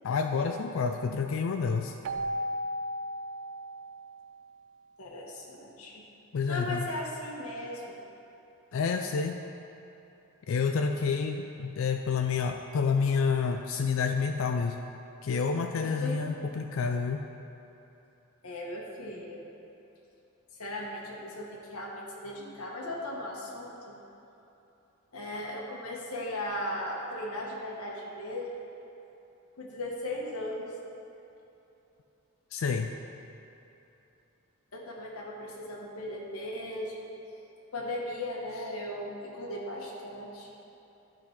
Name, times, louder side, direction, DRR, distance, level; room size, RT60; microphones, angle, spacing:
voice 1, 0.0-2.0 6.3-6.9 8.7-9.4 10.5-14.8 15.2-17.2 32.5-32.9, left 5 dB, 65° left, 5 dB, 0.3 m, -29 dB
Keyboard (musical), 2.0-4.7, equal, 70° right, 0.3 m, -35 dB
voice 2, 5.0-6.0 6.4-8.0 15.8-16.3 18.4-19.4 20.6-24.0 25.1-28.6 29.6-30.7 34.7-37.0 37.7-40.5, left 1 dB, 85° left, -2 dB, 1.3 m, -37 dB
11.5 x 3.9 x 5.7 m, 3.0 s
head